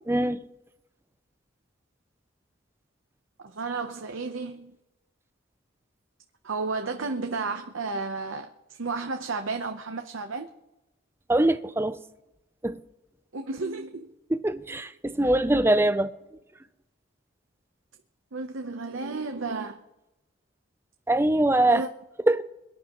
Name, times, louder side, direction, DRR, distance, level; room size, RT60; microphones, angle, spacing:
voice 1, 0.1-0.4 11.3-12.0 12.6-12.8 14.3-16.1 21.1-21.8 22.3-22.4, right 1 dB, 10° right, 0.5 m, -22 dB
voice 2, 3.4-4.7 6.4-10.5 13.3-14.1 18.3-19.8 21.7-21.9, right 4 dB, 80° right, 0.8 m, -32 dB
23.0 x 11.0 x 3.0 m
head